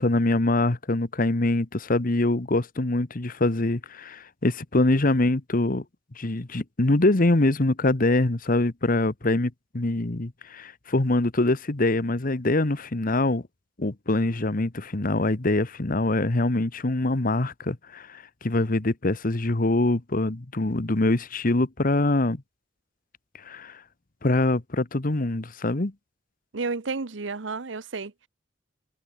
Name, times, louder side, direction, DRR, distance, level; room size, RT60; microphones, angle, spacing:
voice 1, 0.0-5.8 6.2-13.4 13.8-22.4 23.4-23.8 24.2-25.9, left 2 dB, 50° left, 1.2 m, -24 dB
voice 2, 26.5-28.3, right 4 dB, 90° right, 1.0 m, -31 dB
head